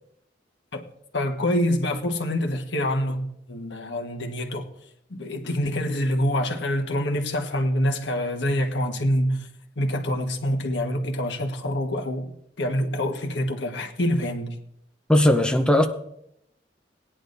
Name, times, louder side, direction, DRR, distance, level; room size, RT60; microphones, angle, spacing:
voice 1, 0.7-4.7 5.1-9.5 9.8-12.3 12.6-14.6, left 1 dB, 80° left, 1.4 m, -26 dB
voice 2, 15.1-15.9, left 1 dB, 5° left, 0.7 m, -18 dB
18.5 x 10.0 x 2.6 m
head